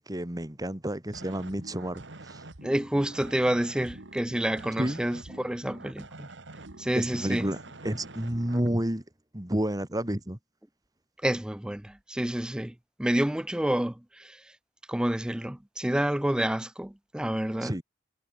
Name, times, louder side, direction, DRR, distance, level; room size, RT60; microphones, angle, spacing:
voice 1, 0.1-2.4 4.8-5.0 7.0-7.6 7.8-9.0 9.3-10.4 17.6-17.8, right 1 dB, 20° right, 2.2 m, -30 dB
sound 1, 1.1-8.7, right 2 dB, 90° right, 2.3 m, -46 dB
voice 2, 2.6-6.3 6.8-7.5 11.2-14.5 14.9-17.8, right 1 dB, 5° right, 0.3 m, -29 dB
head